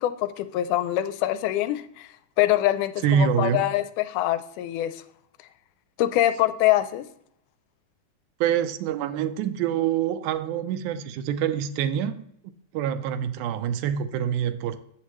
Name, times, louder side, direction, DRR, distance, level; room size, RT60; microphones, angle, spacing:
voice 1, 0.0-2.1 2.4-5.0 6.0-7.0, left 14 dB, 85° left, 2.0 m, -24 dB
voice 2, 3.0-3.7 8.4-12.3 12.7-14.8, right 9 dB, 80° right, 2.0 m, -26 dB
8.6 x 7.5 x 3.0 m
omnidirectional pair, 3.5 m